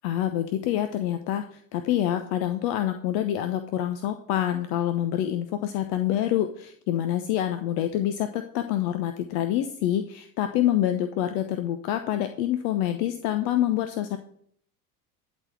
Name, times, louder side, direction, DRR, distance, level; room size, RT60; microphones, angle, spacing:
voice 1, 0.0-14.2, left 11 dB, 55° left, 8 dB, 0.9 m, -26 dB
11.5 x 4.3 x 7.7 m, 0.64 s
hypercardioid pair, 85°, 48 cm